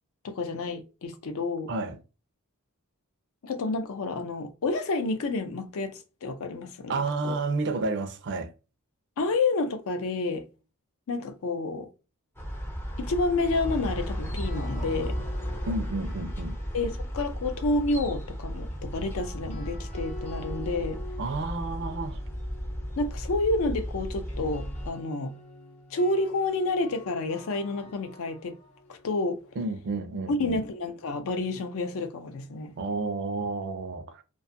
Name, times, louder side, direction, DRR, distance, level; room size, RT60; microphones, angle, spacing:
voice 1, 0.2-1.7 3.4-7.4 9.2-10.5 11.1-11.9 13.0-15.2 16.7-21.0 23.0-25.4 25.9-28.6 28.9-29.4 30.3-32.7, left 2 dB, 65° left, 0.4 m, -29 dB
voice 2, 6.9-8.5 15.7-16.5 21.2-22.2 29.6-30.6 32.8-34.2, right 3 dB, 55° right, 0.4 m, -31 dB
sound 1, 12.4-24.9, equal, 10° left, 0.4 m, -34 dB
sound 2, 13.3-17.5 18.7-30.6, left 2 dB, 30° left, 0.8 m, -48 dB
2.5 x 2.3 x 2.6 m
head